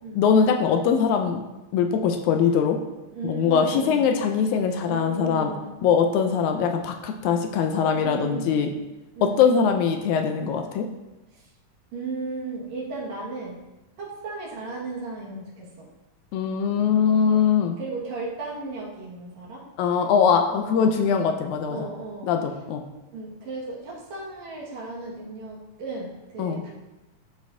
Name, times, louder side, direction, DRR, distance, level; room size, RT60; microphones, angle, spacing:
voice 1, 0.1-1.4 1.7-2.8 3.2-5.5 5.8-8.7 9.2-10.9 16.3-17.8 19.8-21.9 22.2-22.9 26.4-26.6, left 6 dB, 80° left, 5 dB, 1.8 m, -22 dB
voice 2, 3.1-4.1 4.8-5.7 7.9-8.8 9.2-9.4 11.3-11.5 11.9-13.6 14.0-15.9 17.0-17.4 17.8-19.6 20.5-21.0 21.7-22.3 23.1-26.7, right 3 dB, 60° right, -4 dB, 2.8 m, -35 dB
12.0 x 5.1 x 2.7 m, 1.0 s
omnidirectional pair, 3.7 m